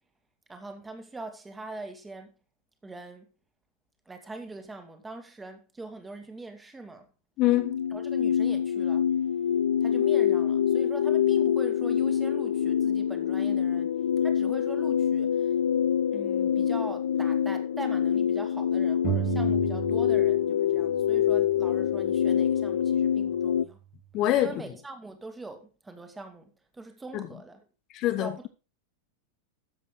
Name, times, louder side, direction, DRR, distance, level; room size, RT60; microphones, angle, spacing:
voice 1, 0.5-2.3 2.8-3.3 4.1-7.1 7.9-9.1 9.8-13.9 14.2-15.5 16.1-23.8 24.4-27.6 28.2-28.5, right 3 dB, 10° right, 2.0 m, -42 dB
voice 2, 7.4-7.8 24.1-24.5 27.1-27.2 27.9-28.5, left 14 dB, 40° left, 0.9 m, -25 dB
sound 1, 7.5-23.6, left 9 dB, 65° left, 0.5 m, -25 dB
sound 2, 19.0-20.6 20.8-22.6, right 11 dB, 35° right, 1.9 m, -34 dB
13.5 x 7.5 x 3.9 m
figure-of-eight pair, 90°, 0 cm